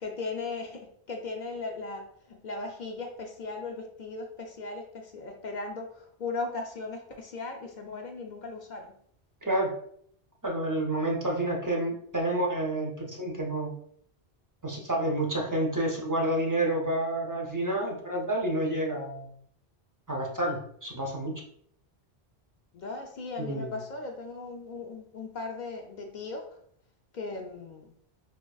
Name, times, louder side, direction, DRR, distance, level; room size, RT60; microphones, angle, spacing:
voice 1, 0.0-9.0 22.7-26.6 27.1-27.9, left 3 dB, 55° left, 2 dB, 0.5 m, -37 dB
voice 2, 9.4-9.7 10.4-13.7 14.6-19.3 20.1-21.3 23.4-23.7, right 1 dB, 25° right, -1 dB, 0.4 m, -29 dB
4.9 x 2.4 x 2.3 m, 0.66 s
omnidirectional pair, 1.1 m